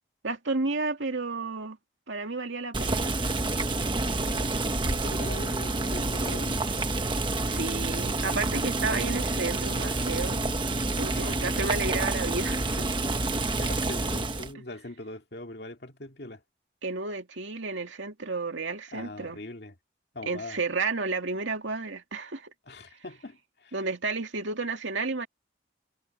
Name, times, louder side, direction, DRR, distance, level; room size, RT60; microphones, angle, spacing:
voice 1, 0.2-1.8 2.1-3.2 7.5-10.4 11.0-12.9 16.8-19.4 20.3-22.5 23.7-25.3, right 3 dB, 85° right, 2.3 m, -32 dB
Boiling, 2.7-14.5, right 2 dB, 25° right, 1.3 m, -28 dB
voice 2, 4.3-6.7 11.1-11.4 13.5-16.4 18.9-19.7 20.1-20.6 22.7-23.8, left 2 dB, 60° left, 2.2 m, -41 dB
head